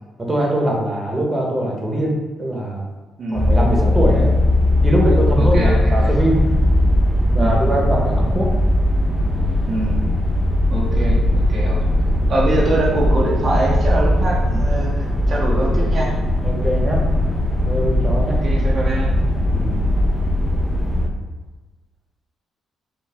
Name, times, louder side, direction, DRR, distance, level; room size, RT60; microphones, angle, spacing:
voice 1, 0.2-2.9 3.3-4.3 4.8-6.4 7.3-8.5 16.4-17.0 17.6-18.4 19.5-19.8, right 1 dB, 20° right, -1 dB, 1.1 m, -22 dB
voice 2, 3.2-3.6 5.4-6.1 7.4-7.6 9.6-10.0 10.7-11.8 12.3-16.2 18.4-19.2, right 2 dB, 55° right, -3 dB, 0.8 m, -24 dB
sound 1, 3.3-21.1, left 1 dB, ahead, 0.6 m, -18 dB
4.7 x 2.4 x 3.4 m, 1.2 s
cardioid pair, 90°, 0 cm